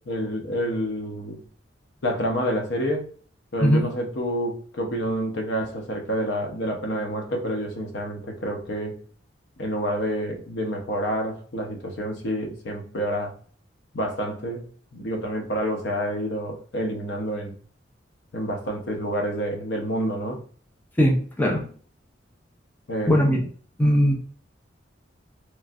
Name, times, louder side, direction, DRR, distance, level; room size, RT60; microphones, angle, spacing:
voice 1, 0.0-1.4 2.0-3.1 3.5-8.9 9.6-13.3 13.9-17.5 18.3-20.4 22.9-23.2, equal, 65° left, 3 dB, 0.6 m, -28 dB
voice 2, 21.0-21.6 23.1-23.4 23.8-24.1, equal, 10° left, 0 dB, 0.5 m, -19 dB
3.1 x 2.6 x 2.3 m, 0.43 s
head